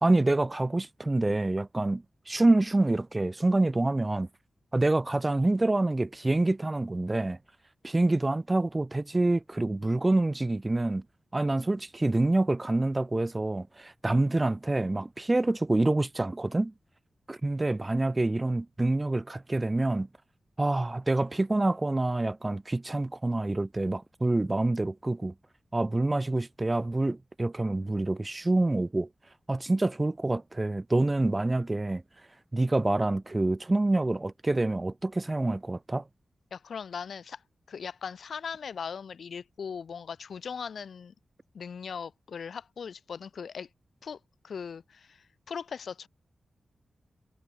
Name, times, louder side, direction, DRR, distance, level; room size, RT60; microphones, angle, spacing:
voice 1, 0.0-4.3 4.7-7.4 7.8-11.0 11.3-16.7 17.3-20.1 20.6-25.3 25.7-29.1 29.5-32.0 32.5-36.0, right 2 dB, 20° right, 0.5 m, -27 dB
voice 2, 36.5-37.4 37.7-41.1 41.5-43.7 44.0-44.2 44.4-46.1, left 6 dB, 80° left, 2.2 m, -39 dB
wide cardioid pair, 125°, 0 cm